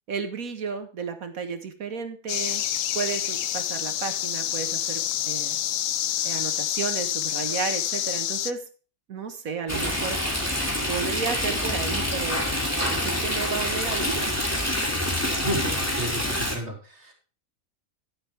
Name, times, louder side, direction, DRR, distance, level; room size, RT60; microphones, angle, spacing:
voice 1, 0.1-2.6 2.9-5.6 6.2-8.6 9.1-10.2 10.9-12.5 12.9-14.3, right 5 dB, 90° right, 8 dB, 1.8 m, -32 dB
sound 1, 2.3-8.5, left 11 dB, 75° left, 1.0 m, -28 dB
Stream, 9.7-16.6, left 1 dB, 10° left, 2.5 m, -26 dB
voice 2, 15.4-17.1, equal, 50° right, 1 dB, 3.4 m, -32 dB
11.0 x 10.0 x 3.4 m, 0.37 s
omnidirectional pair, 1.4 m